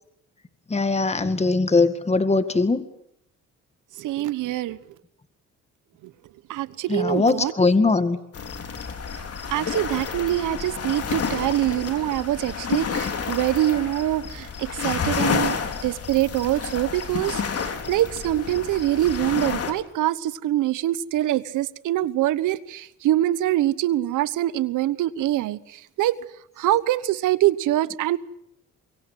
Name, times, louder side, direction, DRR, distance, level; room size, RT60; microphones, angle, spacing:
voice 1, 0.7-2.8 6.9-8.2, left 3 dB, 20° left, 11 dB, 2.0 m, -20 dB
voice 2, 4.0-4.8 6.5-7.5 9.5-26.2 26.6-28.2, right 14 dB, 85° right, 17 dB, 1.2 m, -24 dB
sound 1, 8.3-19.7, left 6 dB, 55° left, 3.8 m, -30 dB
25.5 x 23.0 x 8.2 m, 0.74 s
cardioid pair, 90°, 30 cm